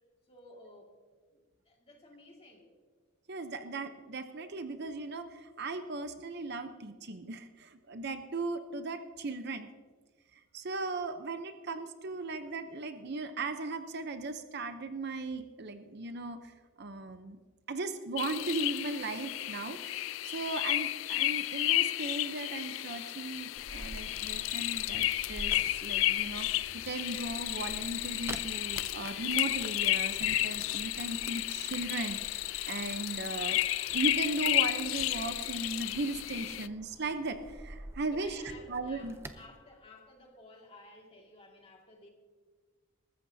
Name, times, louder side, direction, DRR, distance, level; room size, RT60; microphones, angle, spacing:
voice 1, 0.3-0.9 1.3-2.7 38.1-42.1, left 2 dB, 25° left, 0 dB, 2.1 m, -55 dB
voice 2, 3.3-9.7 10.5-16.5 16.8-17.4 17.7-33.6 33.9-38.4 38.7-39.1, right 3 dB, 50° right, 8 dB, 0.7 m, -37 dB
sound 1, 18.2-36.7, left 15 dB, 65° left, 0.3 m, -32 dB
sound 2, 23.6-39.5, right 1 dB, 10° right, 0.5 m, -49 dB
21.0 x 13.5 x 2.7 m, 1.5 s
head